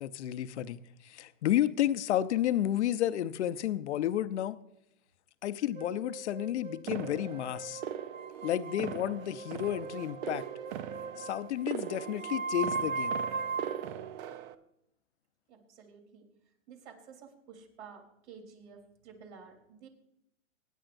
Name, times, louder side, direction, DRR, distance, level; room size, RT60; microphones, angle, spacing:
voice 1, 0.0-4.6 5.4-7.8 8.4-10.4 11.2-13.2, left 12 dB, 60° left, 12 dB, 0.8 m, -31 dB
sound 1, 5.8-13.9, right 4 dB, 90° right, 1.1 m, -39 dB
sound 2, 6.9-14.5, right 10 dB, 40° right, 0.7 m, -41 dB
voice 2, 15.5-16.3 16.7-19.9, right 6 dB, 60° right, 4 dB, 3.5 m, -52 dB
25.5 x 10.0 x 2.6 m, 0.80 s
hypercardioid pair, 135°, 39 cm